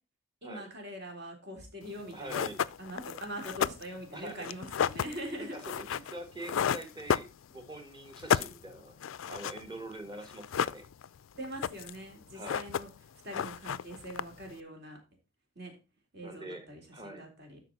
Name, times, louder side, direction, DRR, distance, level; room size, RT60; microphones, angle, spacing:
voice 1, 0.4-5.6 11.3-12.9 13.2-15.0 15.6-15.8 16.1-17.6, equal, 55° right, 2 dB, 3.5 m, -43 dB
sound 1, 1.9-2.0 2.3-7.8 8.1-9.9 10.2-11.2 11.4-12.0 12.3-13.1 13.3-14.5, left 8 dB, 70° left, 0.4 m, -32 dB
voice 2, 2.1-2.6 4.1-4.5 5.4-8.9 9.3-10.8 12.3-12.6 16.2-16.7 16.9-17.3, right 1 dB, 20° right, 7 dB, 1.6 m, -44 dB
12.5 x 4.9 x 3.9 m, 0.31 s
head